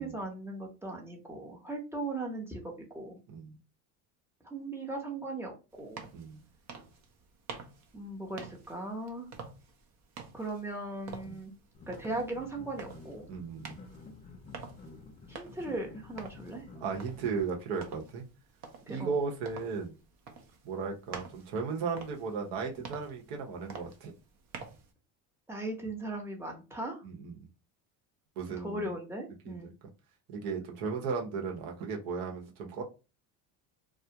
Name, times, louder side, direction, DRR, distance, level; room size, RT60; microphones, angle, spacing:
voice 1, 0.0-3.2 4.4-5.5 5.8-6.0 7.9-9.3 10.3-11.5 11.9-13.3 15.3-16.6 18.9-19.1 25.5-27.0 28.6-29.7, right 2 dB, 5° right, 0.7 m, -38 dB
sound 1, 5.7-24.9, right 5 dB, 40° right, 0.6 m, -49 dB
sound 2, 11.7-17.4, left 3 dB, 20° left, 0.3 m, -50 dB
voice 2, 13.3-13.8 16.8-18.2 18.9-19.9 20.6-24.1 27.0-27.5 28.4-28.9 29.4-29.7 30.3-32.8, right 5 dB, 70° right, 0.9 m, -35 dB
2.3 x 2.1 x 2.8 m
supercardioid pair, 105°, 41 cm